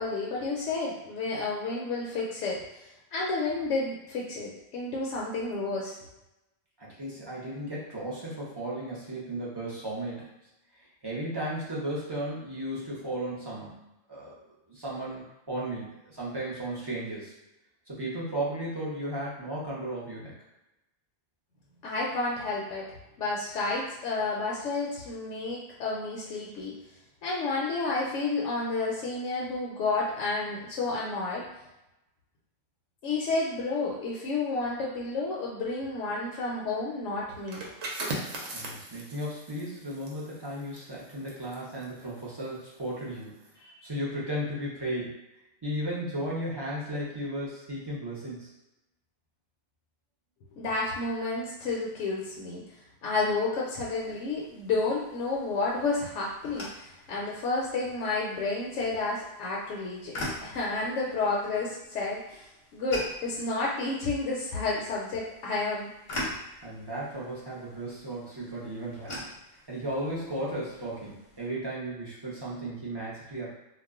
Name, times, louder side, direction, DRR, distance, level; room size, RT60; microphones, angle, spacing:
voice 1, 0.0-2.6 3.1-6.0 21.8-22.9 23.2-26.7 27.2-31.4 33.0-37.6 50.6-52.6 53.0-62.5 62.7-65.9, left 3 dB, 75° left, -4 dB, 0.9 m, -31 dB
voice 2, 6.8-10.3 10.8-13.8 14.1-14.4 14.7-17.3 17.9-20.3 38.5-45.2 45.6-48.5 66.6-69.2 69.7-73.6, right 1 dB, 30° right, -6 dB, 0.5 m, -35 dB
sound 1, 37.4-42.9 43.2-43.5, right 2 dB, 70° right, 0.9 m, -39 dB
sound 2, 53.7-71.5, left 1 dB, 45° left, 0.7 m, -44 dB
2.3 x 2.1 x 3.5 m, 0.93 s
omnidirectional pair, 1.3 m